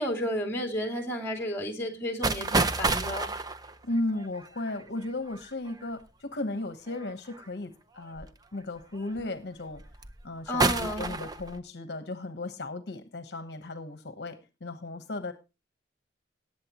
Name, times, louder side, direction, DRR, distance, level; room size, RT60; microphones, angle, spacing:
voice 1, 0.0-3.3 10.5-11.2, equal, 15° left, 2.4 m, -32 dB
sound 1, 2.2-5.7 6.9-7.4 8.2-8.3 8.8-9.2 9.7-10.2 10.6-11.6, right 3 dB, 20° right, 0.6 m, -29 dB
voice 2, 3.8-9.8 10.2-15.3, left 2 dB, 60° left, 1.0 m, -35 dB
18.5 x 7.8 x 2.9 m
head